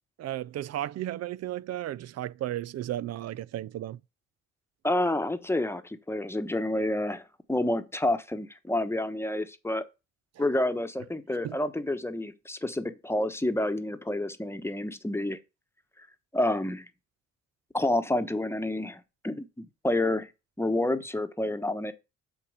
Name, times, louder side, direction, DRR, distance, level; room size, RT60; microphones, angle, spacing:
voice 1, 0.2-4.0 11.4-11.6, right 13 dB, 55° right, 0.5 m, -34 dB
voice 2, 4.8-9.8 10.4-15.4 16.3-16.9 17.7-20.3 20.6-21.9, left 1 dB, 10° left, 1.1 m, -29 dB
7.7 x 4.3 x 6.4 m
cardioid pair, 90°, 30 cm